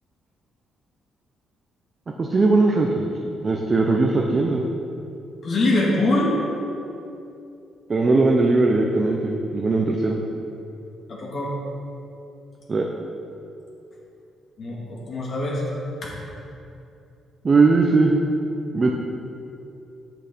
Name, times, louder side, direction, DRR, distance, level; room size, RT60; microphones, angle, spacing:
voice 1, 2.2-3.0 3.4-4.7 7.9-10.2 12.7-12.9 17.4-18.1 18.7-18.9, right 3 dB, 35° right, 1 dB, 0.9 m, -19 dB
voice 2, 5.4-6.3 11.1-11.5 14.6-15.6 16.0-16.1, left 2 dB, 55° left, -5 dB, 2.5 m, -23 dB
8.2 x 6.5 x 6.3 m, 2.7 s
cardioid pair, 90°, 0 cm